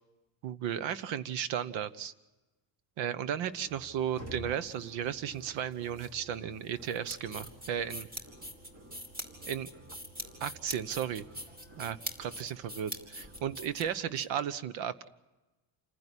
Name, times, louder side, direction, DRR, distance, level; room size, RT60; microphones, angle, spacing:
voice 1, 0.4-2.1 3.0-8.1 9.4-9.7 10.4-11.2 11.8-15.1, right 9 dB, 90° right, 15 dB, 1.1 m, -35 dB
sound 1, 3.5-13.7, right 1 dB, 35° right, 2.5 m, -52 dB
sound 2, 6.8-14.2, equal, 20° right, 2.6 m, -43 dB
28.0 x 15.5 x 10.0 m, 1.1 s
cardioid pair, 170°, 44 cm